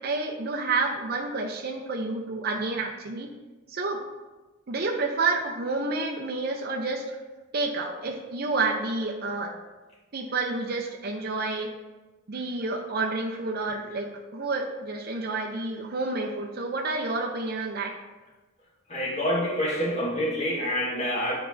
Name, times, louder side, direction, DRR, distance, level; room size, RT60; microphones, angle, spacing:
voice 1, 0.0-3.3 3.7-4.0 4.7-7.2 7.5-9.6 10.1-11.7 12.3-18.0, right 3 dB, 50° right, 1 dB, 0.6 m, -29 dB
voice 2, 18.9-21.4, equal, 35° left, -3 dB, 1.5 m, -27 dB
10.5 x 4.4 x 2.6 m, 1.2 s
head